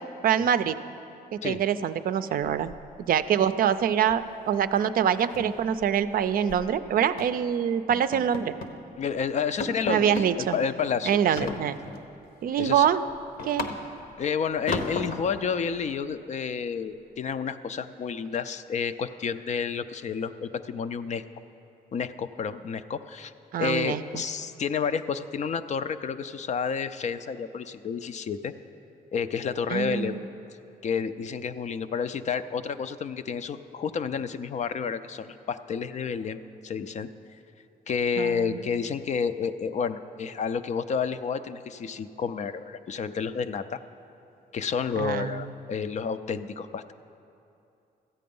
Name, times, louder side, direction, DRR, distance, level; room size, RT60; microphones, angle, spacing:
voice 1, 0.2-0.8 1.4-2.7 3.1-8.5 9.9-10.6 11.0-11.7 12.4-13.0 13.4-13.7 23.5-24.2 29.7-30.2 38.2-38.6 45.0-45.5, right 9 dB, 65° right, 11 dB, 0.4 m, -25 dB
sound 1, 2.4-3.2 3.5-3.8 4.1-4.3 4.6-4.7 5.1-6.7 7.2-7.4 7.9-8.8 9.2-9.3 9.6-10.3 11.4-12.1 12.5-14.1 14.7-15.4, left 3 dB, 65° left, 0.9 m, -35 dB
voice 2, 9.0-11.5 12.6-12.9 14.2-21.2 21.9-23.3 23.6-28.5 29.1-30.2 30.8-36.4 36.6-37.1 37.9-43.8 44.5-46.9, left 6 dB, 45° left, 11 dB, 0.4 m, -30 dB
14.0 x 8.5 x 5.3 m, 2.7 s
cardioid pair, 115°, 16 cm